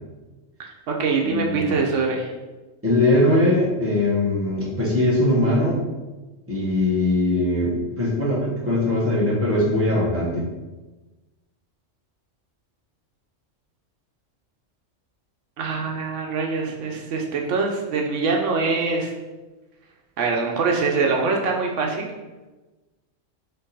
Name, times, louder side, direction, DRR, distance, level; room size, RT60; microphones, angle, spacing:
voice 1, 0.6-2.3 15.6-19.1 20.2-22.1, right 4 dB, 80° right, 1 dB, 1.0 m, -24 dB
voice 2, 1.2-1.8 2.8-5.8 6.5-10.4, left 1 dB, 10° right, -5 dB, 1.0 m, -21 dB
4.4 x 3.0 x 4.0 m, 1.2 s
omnidirectional pair, 1.3 m